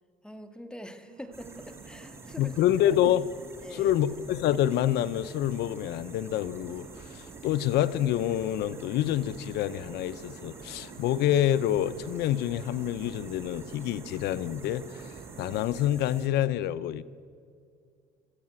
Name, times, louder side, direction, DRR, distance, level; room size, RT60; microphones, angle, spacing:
voice 1, 0.2-2.5 3.6-4.0, equal, 5° left, 1.8 m, -44 dB
sound 1, 0.9-15.6, right 8 dB, 85° right, 1.3 m, -49 dB
sound 2, 1.3-16.3, right 3 dB, 15° right, 2.6 m, -48 dB
voice 2, 2.4-3.3 3.7-17.0, left 12 dB, 80° left, 0.8 m, -27 dB
25.0 x 13.5 x 8.9 m
cardioid pair, 110°, 17 cm